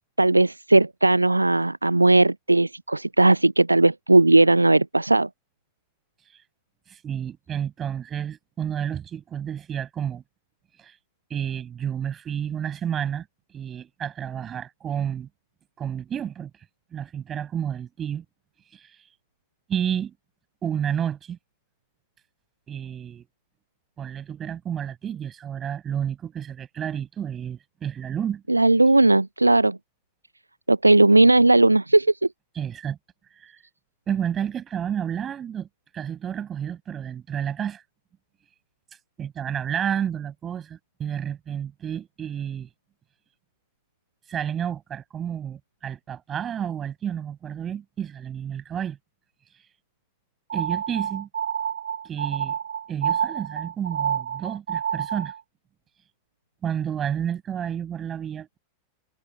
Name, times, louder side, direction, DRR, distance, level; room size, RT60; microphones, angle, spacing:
voice 1, 0.2-5.3 28.5-29.8 30.7-32.1, right 2 dB, 85° right, 0.6 m, -17 dB
voice 2, 6.9-10.2 10.8-11.0 11.3-13.3 13.5-15.3 15.8-16.5 16.9-18.2 18.7-19.1 19.7-20.1 20.6-21.4 22.7-23.2 24.0-28.4 32.5-33.0 33.3-33.6 34.1-35.7 35.9-37.8 39.2-42.7 44.3-49.0 49.5-49.7 50.5-51.3 52.0-52.6 52.9-55.3 56.6-58.6, right 9 dB, 25° right, 6.8 m, -30 dB
sound 1, 50.5-55.4, right 8 dB, 65° right, 1.7 m, -28 dB
figure-of-eight pair, 90°, 0 cm